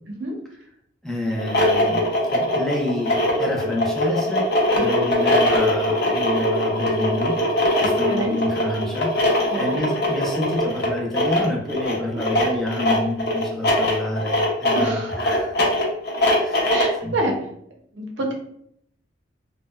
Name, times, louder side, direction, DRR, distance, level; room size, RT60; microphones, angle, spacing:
voice 1, 1.0-4.5 4.8-7.4 7.8-15.7 16.4-16.7 17.0-17.1, left 1 dB, ahead, -3 dB, 0.4 m, -28 dB
sound 1, 1.3-17.0, left 1 dB, 60° left, 0.5 m, -21 dB
voice 2, 7.8-8.3 9.5-9.8 12.1-12.2 14.7-15.2 16.7-17.3 17.9-18.3, right 1 dB, 70° right, 1 dB, 0.6 m, -27 dB
2.7 x 2.0 x 2.2 m, 0.70 s
head